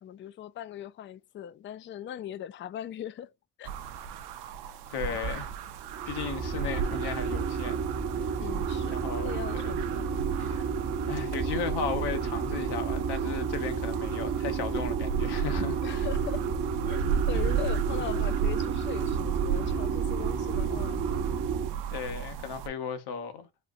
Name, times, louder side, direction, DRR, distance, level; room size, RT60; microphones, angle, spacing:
voice 1, 0.0-3.3 3.6-3.7 8.4-10.2 15.8-16.5 16.9-21.2, left 10 dB, 30° left, 0.4 m, -40 dB
sound 1, 3.6-22.7, right 7 dB, 75° right, 0.7 m, -34 dB
voice 2, 4.9-5.5 6.1-7.8 8.2-8.3 8.9-9.8 10.4-10.7 11.1-16.1 17.9-18.1 21.9-23.5, left 6 dB, 70° left, 1.0 m, -36 dB
sound 2, 5.8-21.7, right 6 dB, 45° right, 0.8 m, -31 dB
4.3 x 2.4 x 2.6 m
hypercardioid pair, 50°, 40 cm